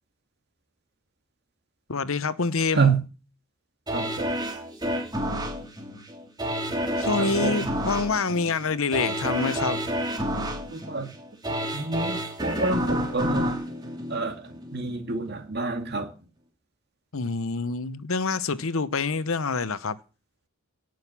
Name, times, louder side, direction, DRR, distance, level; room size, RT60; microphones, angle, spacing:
voice 1, 1.9-2.9 7.0-9.8 17.1-20.0, left 4 dB, 70° left, 0.9 m, -26 dB
voice 2, 2.7-3.0 3.9-4.3 7.2-7.7 10.7-11.1 11.7-13.6 14.1-16.1, right 4 dB, 50° right, 2.4 m, -28 dB
sound 1, 3.9-14.8 15.3-15.4, equal, 20° right, 3.1 m, -29 dB
18.0 x 6.5 x 7.3 m
head